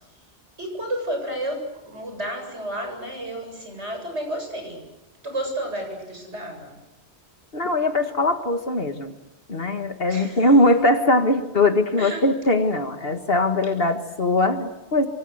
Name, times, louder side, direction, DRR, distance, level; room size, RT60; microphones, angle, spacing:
voice 1, 0.6-4.8 5.2-6.8 10.1-10.5 12.0-12.3, right 1 dB, 85° right, 4 dB, 8.3 m, -31 dB
voice 2, 7.5-9.1 9.5-15.1, left 1 dB, 55° left, 6 dB, 2.1 m, -21 dB
27.0 x 27.0 x 8.1 m, 0.94 s
omnidirectional pair, 1.1 m